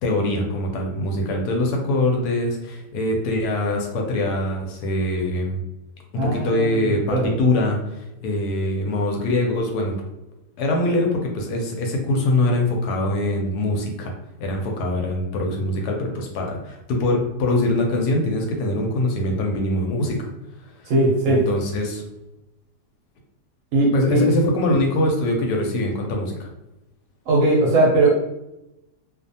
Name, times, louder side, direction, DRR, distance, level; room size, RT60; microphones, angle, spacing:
voice 1, 0.0-5.6 6.1-10.0 10.6-14.1 14.4-20.3 20.6-20.9 21.3-22.0 23.9-26.5, left 1 dB, 75° left, 1 dB, 1.1 m, -23 dB
voice 2, 6.2-7.3 20.9-21.4 23.7-24.2 27.3-28.1, right 2 dB, 65° right, -2 dB, 0.8 m, -19 dB
2.5 x 2.3 x 2.6 m, 0.91 s
omnidirectional pair, 1.8 m